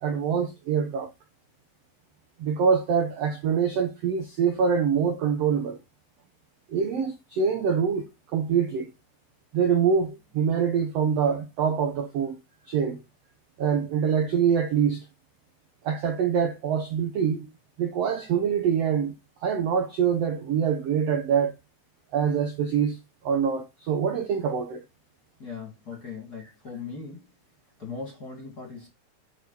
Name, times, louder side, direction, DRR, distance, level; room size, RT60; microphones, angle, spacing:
voice 1, 0.0-1.1 2.4-5.8 6.7-8.0 8.3-8.9 9.5-12.4 12.7-13.0 13.6-15.0 15.8-17.5 17.8-19.1 19.4-21.5 22.1-23.0 23.2-24.8, right 7 dB, 90° right, 1.4 m, -25 dB
voice 2, 25.4-27.2 27.8-28.9, left 5 dB, 30° left, 2.2 m, -39 dB
9.0 x 4.9 x 4.0 m
omnidirectional pair, 4.4 m